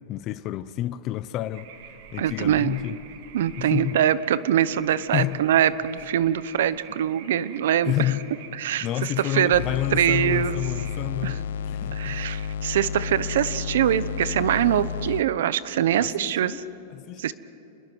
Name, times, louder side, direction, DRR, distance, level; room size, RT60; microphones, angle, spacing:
voice 1, 0.1-1.7 2.1-3.0 3.5-4.0 5.1-5.4 6.9-7.0 7.9-8.3 8.8-12.2 16.0-17.3, left 14 dB, 25° left, 0.5 m, -29 dB
sound 1, 1.5-11.0, right 8 dB, 45° right, 1.6 m, -46 dB
voice 2, 2.2-2.8 3.3-7.9 8.6-9.6 9.9-10.6 11.2-11.3 12.0-16.6 17.2-17.3, right 10 dB, 65° right, 0.8 m, -23 dB
sound 2, 9.5-15.2, left 8 dB, 90° left, 0.6 m, -31 dB
28.5 x 21.0 x 6.2 m
supercardioid pair, 180°, 0 cm